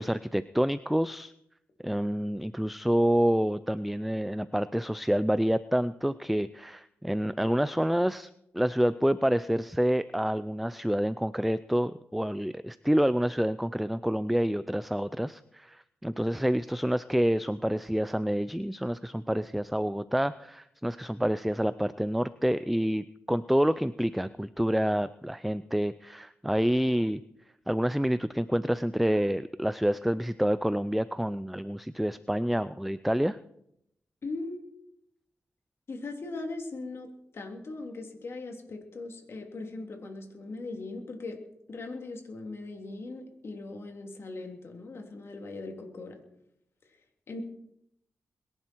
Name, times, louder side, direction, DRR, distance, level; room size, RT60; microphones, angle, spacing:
voice 1, 0.0-1.3 1.8-27.2 27.7-33.4, equal, ahead, 14 dB, 0.4 m, -28 dB
voice 2, 34.2-34.6 35.9-41.4 41.7-46.2 47.3-47.4, left 3 dB, 55° left, 3 dB, 3.2 m, -39 dB
22.0 x 11.0 x 4.6 m, 0.78 s
cardioid pair, 80°, 5 cm